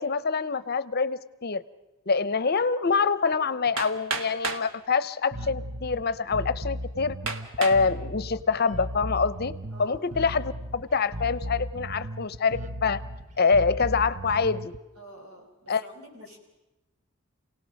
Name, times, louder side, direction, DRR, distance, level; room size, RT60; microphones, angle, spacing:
voice 1, 0.0-1.6 2.1-7.2 7.6-9.5 9.8-13.0 13.4-14.7 15.7-15.8, left 5 dB, 45° left, 16 dB, 0.6 m, -25 dB
Hammer, 3.8-4.7 5.6-5.7 6.3-6.4 7.3-7.9 8.4-8.9, right 4 dB, 65° right, 1.5 m, -32 dB
Bass guitar, 5.3-14.8, equal, 35° right, 0.7 m, -36 dB
voice 2, 9.7-10.4 15.0-16.4, right 1 dB, 85° right, 1 dB, 5.6 m, -49 dB
28.0 x 18.0 x 6.4 m, 1.0 s
head